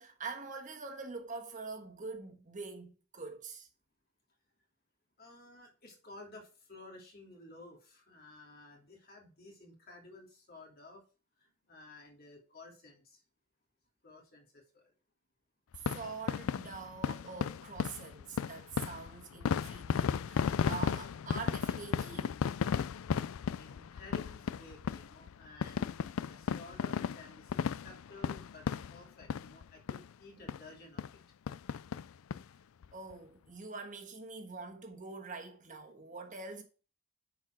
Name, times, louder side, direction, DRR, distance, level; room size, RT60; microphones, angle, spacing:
voice 1, 0.0-3.7 15.7-22.4 32.9-36.6, right 4 dB, 40° right, 1.4 m, -45 dB
voice 2, 5.2-11.0 11.4-13.2 14.0-14.8 23.6-27.6 27.8-31.0, left 2 dB, 45° left, 2.9 m, -54 dB
sound 1, 15.7-29.6 29.9-30.1 30.5-30.6 31.0-31.1 31.5-32.4 32.8-32.9 33.1-33.2, left 7 dB, 80° left, 0.4 m, -35 dB
10.0 x 4.7 x 4.7 m
head